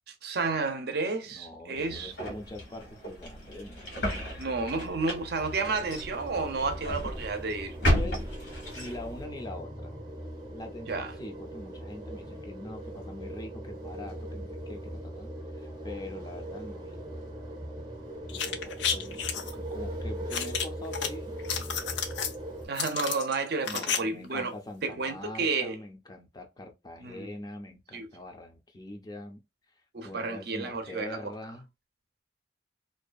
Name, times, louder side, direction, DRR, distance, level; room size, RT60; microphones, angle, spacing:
voice 1, 0.1-2.1 4.4-7.8 10.9-11.1 22.6-24.5 24.8-25.8 27.0-27.3 27.9-28.1 29.9-31.2, right 4 dB, 60° right, 0.5 m, -31 dB
voice 2, 1.3-3.9 8.0-8.2 8.7-10.0 10.5-17.2 18.3-21.4 21.7-21.8 23.6-29.4 29.7-31.7, left 1 dB, 20° left, 0.5 m, -43 dB
sound 1, 1.7-9.2, equal, 70° left, 1.1 m, -33 dB
sound 2, 5.4-22.7, right 1 dB, 25° right, 0.7 m, -40 dB
sound 3, 18.3-19.5 20.3-21.1 21.4-22.3 22.8-24.0 24.2-24.3, left 7 dB, 90° left, 0.5 m, -31 dB
2.6 x 2.3 x 2.3 m
head